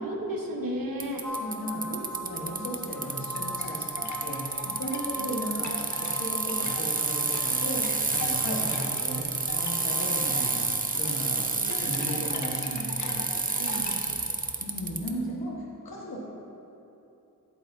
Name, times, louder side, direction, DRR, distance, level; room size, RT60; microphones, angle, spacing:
voice 1, 0.0-1.2 5.1-5.4 11.5-11.7 13.6-14.2, equal, 70° right, 1 dB, 1.2 m, -34 dB
Bicycle, 1.0-15.1, right 3 dB, 25° right, 0.6 m, -29 dB
sound 1, 1.2-11.4, equal, 5° left, 1.7 m, -41 dB
voice 2, 1.3-7.9 8.1-13.2 14.6-16.2, equal, 85° left, -3 dB, 1.6 m, -36 dB
sound 2, 2.7-14.1, left 3 dB, 55° left, 1.0 m, -42 dB
11.5 x 7.6 x 2.7 m, 2.8 s
cardioid pair, 60°, 35 cm